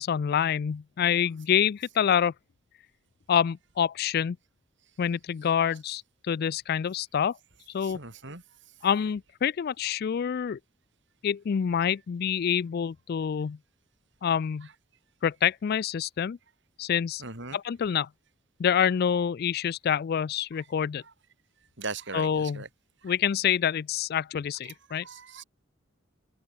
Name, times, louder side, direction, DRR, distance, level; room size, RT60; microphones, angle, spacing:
voice 1, 0.0-2.3 3.3-4.4 5.0-6.0 6.3-7.4 7.7-8.0 8.8-10.6 11.2-13.6 14.2-14.7 15.2-16.4 16.8-17.2 17.5-18.1 18.6-21.0 22.1-22.6 23.0-25.1, left 8 dB, 50° left, 0.3 m, -26 dB
voice 2, 7.8-8.7 14.6-14.7 17.2-17.6 21.0-21.1 21.8-22.7 23.0-23.1 24.6-25.4, right 4 dB, 60° right, 5.0 m, -40 dB
open air
head